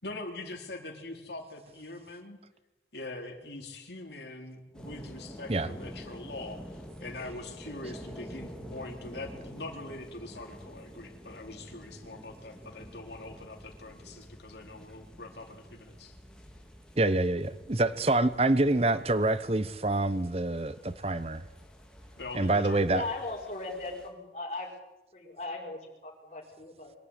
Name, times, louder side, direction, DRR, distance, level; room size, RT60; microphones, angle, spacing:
voice 1, 0.0-2.4 2.9-16.1 22.2-23.1, left 2 dB, 75° left, 2 dB, 4.0 m, -43 dB
sound 1, 4.7-24.1, equal, 5° left, 2.9 m, -48 dB
voice 2, 17.0-21.4 22.3-23.0, right 2 dB, 35° right, 14 dB, 0.9 m, -26 dB
voice 3, 22.9-24.7 25.1-26.9, left 2 dB, 40° left, -3 dB, 5.6 m, -38 dB
24.0 x 12.5 x 10.0 m, 1.0 s
head